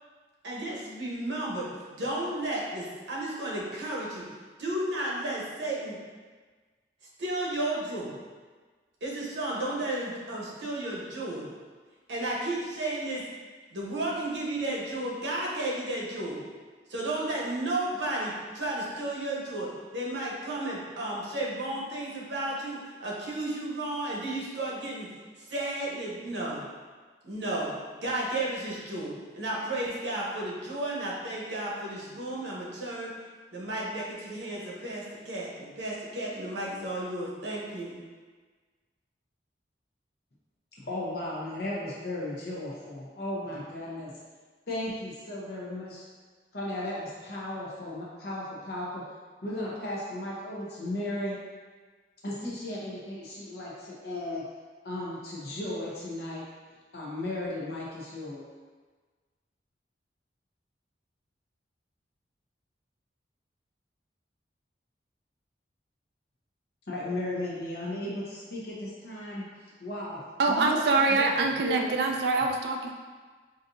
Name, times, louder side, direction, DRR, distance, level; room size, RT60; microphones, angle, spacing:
voice 1, 0.4-4.2 4.6-6.0 7.2-8.1 9.0-11.5 12.1-13.2 13.7-16.4 16.9-25.1 25.5-26.6 27.2-33.1 33.5-38.0, right 1 dB, 80° right, -4 dB, 1.0 m, -33 dB
voice 2, 40.7-44.1 44.7-46.0 46.5-49.0 49.4-51.4 52.2-54.4 54.8-56.4 56.9-58.4 66.9-70.2 70.5-71.9, left 1 dB, 60° left, -5 dB, 0.8 m, -35 dB
voice 3, 70.4-72.9, right 3 dB, 60° right, 2 dB, 0.3 m, -25 dB
5.0 x 2.7 x 2.6 m, 1.4 s
head